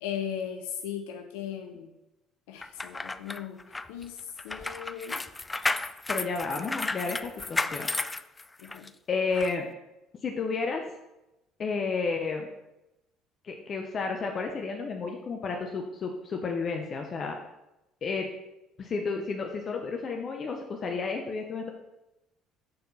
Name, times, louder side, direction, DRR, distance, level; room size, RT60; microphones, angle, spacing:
voice 1, 0.0-1.9 2.5-5.2 8.6-8.9, left 9 dB, 80° left, 5 dB, 0.4 m, -37 dB
sound 1, 2.6-8.9 9.3-9.5, left 2 dB, 20° left, 0.3 m, -33 dB
voice 2, 6.1-7.9 9.1-9.7 10.2-10.8 11.6-12.5 13.4-17.4 18.0-18.3 18.8-21.7, left 4 dB, 45° left, 3 dB, 0.8 m, -31 dB
6.6 x 4.3 x 4.1 m, 0.94 s
hypercardioid pair, 70°, 0 cm